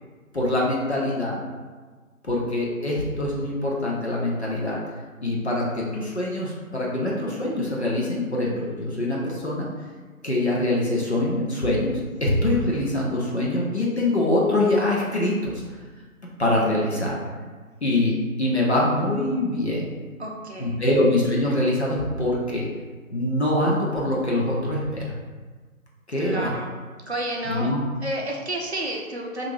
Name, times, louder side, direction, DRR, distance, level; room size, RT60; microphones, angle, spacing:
voice 1, 0.3-1.4 2.3-4.8 5.2-9.7 10.2-15.6 16.4-17.2 17.8-19.9 20.6-22.7 23.1-25.1 26.1-26.5 27.4-27.8, left 1 dB, 50° left, -4 dB, 0.6 m, -24 dB
voice 2, 20.2-20.8 26.2-26.7 27.1-27.7 28.0-29.5, right 1 dB, 50° right, -1 dB, 0.5 m, -31 dB
2.7 x 2.5 x 3.2 m, 1.4 s
figure-of-eight pair, 160°, 43 cm